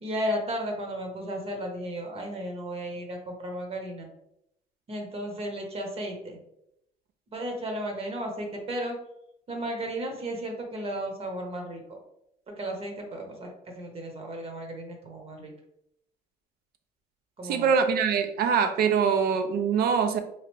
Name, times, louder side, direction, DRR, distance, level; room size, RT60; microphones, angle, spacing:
voice 1, 0.0-4.1 4.9-6.4 7.3-9.0 9.5-12.0 12.6-13.5 13.8-15.5 17.4-17.7, right 1 dB, 35° right, 2 dB, 0.9 m, -34 dB
voice 2, 17.4-20.2, right 6 dB, 65° right, 9 dB, 0.4 m, -23 dB
3.1 x 2.4 x 3.0 m, 0.78 s
cardioid pair, 110°, 17 cm